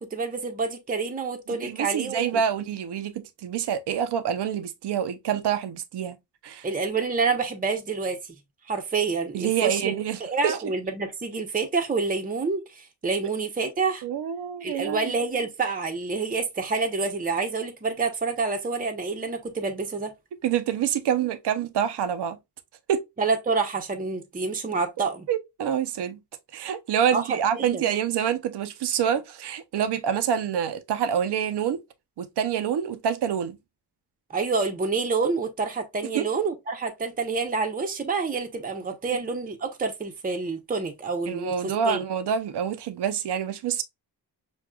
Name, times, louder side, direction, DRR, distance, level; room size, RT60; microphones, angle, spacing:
voice 1, 0.0-2.3 6.6-8.3 8.7-9.9 10.2-14.0 14.6-20.1 23.2-25.3 27.1-27.8 34.3-42.0, right 4 dB, 20° right, 0.7 m, -28 dB
voice 2, 1.6-6.2 6.4-6.7 9.3-10.6 14.0-15.1 20.4-22.4 22.9-23.0 25.3-26.2 26.5-31.8 32.2-33.6 36.1-36.3 41.3-43.8, right 8 dB, 75° right, 0.7 m, -27 dB
6.2 x 2.3 x 2.2 m
wide cardioid pair, 100°, 41 cm